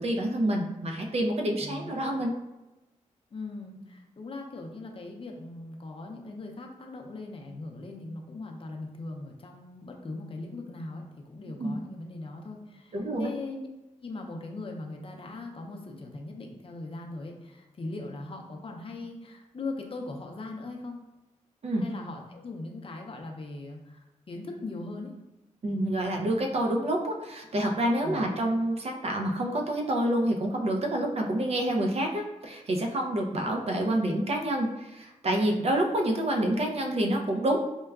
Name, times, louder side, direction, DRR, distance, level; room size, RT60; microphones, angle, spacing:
voice 1, 0.0-2.3 11.6-11.7 12.9-13.3 21.6-21.8 25.6-37.6, right 1 dB, 50° right, 2 dB, 0.5 m, -28 dB
voice 2, 1.6-2.1 3.3-13.7 14.0-21.0 21.8-25.1 28.0-28.3, left 2 dB, 45° left, 1 dB, 0.5 m, -40 dB
4.5 x 2.1 x 2.3 m, 1.0 s
cardioid pair, 70°, 13 cm